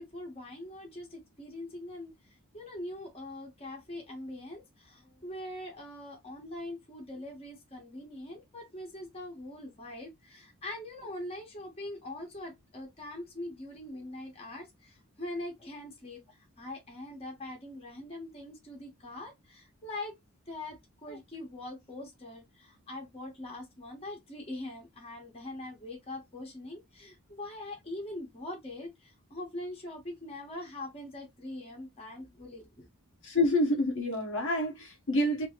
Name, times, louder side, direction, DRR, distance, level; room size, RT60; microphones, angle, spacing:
voice 1, 0.0-2.1 2.5-20.2 20.5-32.9, left 1 dB, 25° left, 1.3 m, -42 dB
voice 2, 33.2-35.5, left 1 dB, 60° left, 1.1 m, -28 dB
3.0 x 3.0 x 3.0 m
head